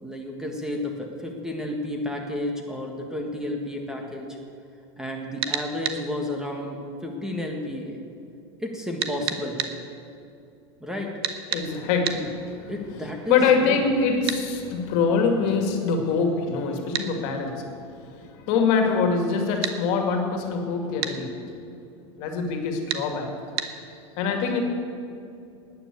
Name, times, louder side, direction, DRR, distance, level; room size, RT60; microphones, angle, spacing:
voice 1, 0.0-4.3 5.0-8.0 8.6-9.6 10.8-11.1 12.7-13.8, left 1 dB, 5° right, 1 dB, 1.7 m, -31 dB
sound 1, 5.4-6.0 9.0-9.7 11.2-11.7 12.0-12.2 14.3-14.4 16.9-17.1 19.6-19.8 21.0-21.2 22.9-23.0 23.6-23.7, right 10 dB, 65° right, 1.1 m, -28 dB
voice 2, 11.5-12.7 13.3-21.6 22.2-23.3 24.2-24.6, left 5 dB, 55° left, 4 dB, 2.3 m, -24 dB
12.0 x 9.6 x 8.6 m, 2.6 s
supercardioid pair, 125°, 14 cm